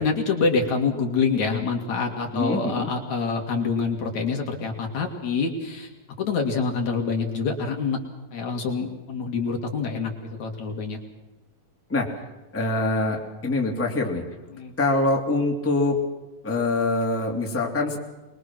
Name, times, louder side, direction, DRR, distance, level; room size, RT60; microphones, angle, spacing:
voice 1, 0.0-5.9 6.2-8.0 8.3-11.0 14.5-14.7, left 4 dB, 55° left, 2 dB, 3.5 m, -26 dB
voice 2, 2.3-2.9 11.9-12.3 12.5-14.2 14.8-15.9 16.4-18.0, left 2 dB, 5° left, -1 dB, 2.5 m, -24 dB
24.5 x 21.5 x 6.2 m, 1.1 s
omnidirectional pair, 4.0 m